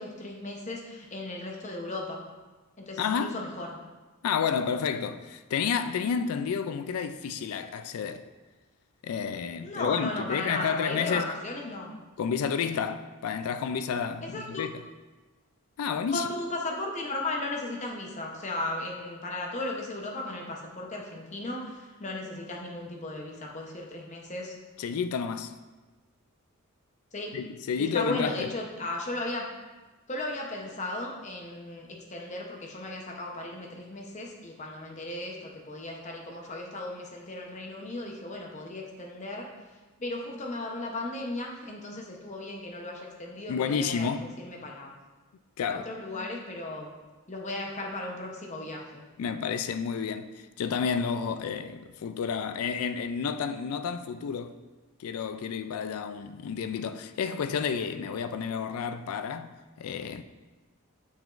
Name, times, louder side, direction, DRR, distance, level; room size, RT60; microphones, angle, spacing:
voice 1, 0.0-2.2 2.8-3.8 9.6-11.9 14.2-14.6 16.1-24.5 27.1-27.4 27.8-29.5 30.1-39.5 40.0-44.9 45.7-46.9 47.3-49.1, left 2 dB, 35° left, 0.8 m, -36 dB
voice 2, 3.0-3.4 4.2-8.2 9.0-11.3 12.2-14.9 15.8-16.3 24.8-25.5 27.3-28.5 43.5-44.3 45.6-45.9 49.2-54.6 55.0-60.2, left 6 dB, 80° left, 0.3 m, -30 dB
7.1 x 6.0 x 2.5 m
head